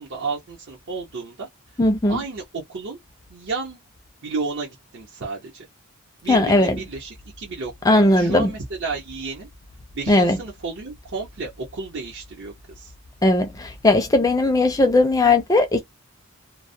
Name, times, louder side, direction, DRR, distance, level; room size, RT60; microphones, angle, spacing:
voice 1, 0.0-1.5 2.1-3.0 3.3-3.8 4.2-5.7 6.2-9.5 9.9-12.9, right 4 dB, 55° right, 0.8 m, -32 dB
voice 2, 1.8-2.2 6.3-6.8 7.9-8.5 10.1-10.4 13.2-15.8, left 2 dB, 15° left, 0.4 m, -18 dB
2.2 x 2.1 x 2.6 m
head